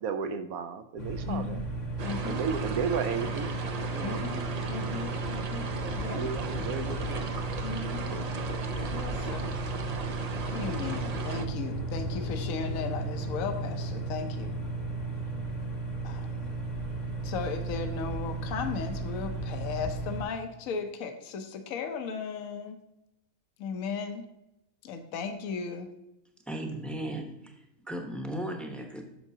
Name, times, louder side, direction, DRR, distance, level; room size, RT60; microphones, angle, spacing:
voice 1, 0.0-1.6 2.2-3.6 3.9-4.2 5.2-7.3, right 6 dB, 80° right, 10 dB, 1.1 m, -34 dB
sound 1, 1.0-20.2, right 2 dB, 35° left, 1.0 m, -35 dB
voice 2, 1.3-1.6 2.0-2.4 4.0-4.4 4.7-5.6 5.9-6.3 7.6-8.1 8.9-9.5 10.5-14.6 16.0-16.3 17.2-22.8 23.6-24.2 24.8-25.9, left 5 dB, 70° left, 6 dB, 1.1 m, -36 dB
sound 2, 2.0-11.5, right 3 dB, 65° right, 0.4 m, -37 dB
sound 3, 9.2-18.9, left 1 dB, 90° left, 2.3 m, -43 dB
voice 3, 26.5-27.5 27.9-29.0, right 1 dB, ahead, 2 dB, 0.7 m, -36 dB
9.0 x 6.5 x 2.7 m, 0.87 s
omnidirectional pair, 1.5 m